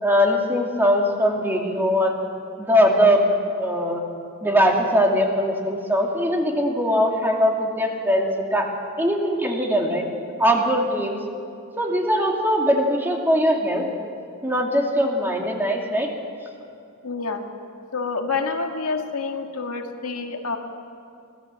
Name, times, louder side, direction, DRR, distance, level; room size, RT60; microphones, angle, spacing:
voice 1, 0.0-2.1 2.6-3.2 3.6-4.0 4.4-8.7 9.0-10.0 10.4-11.2 11.8-13.9 14.4-16.1, equal, 10° right, 0 dB, 2.6 m, -21 dB
voice 2, 17.0-17.4 17.9-20.6, left 4 dB, 80° left, 3 dB, 1.9 m, -27 dB
25.0 x 16.5 x 7.6 m, 2.5 s
head